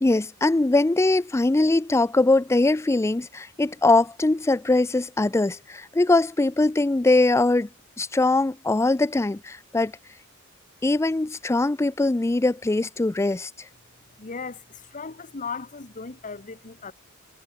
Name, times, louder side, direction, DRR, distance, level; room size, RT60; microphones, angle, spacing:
voice 1, 0.0-7.7 8.0-9.9 10.8-13.5, left 2 dB, 15° left, 0.4 m, -21 dB
voice 2, 14.2-16.9, left 4 dB, 35° left, 1.1 m, -37 dB
head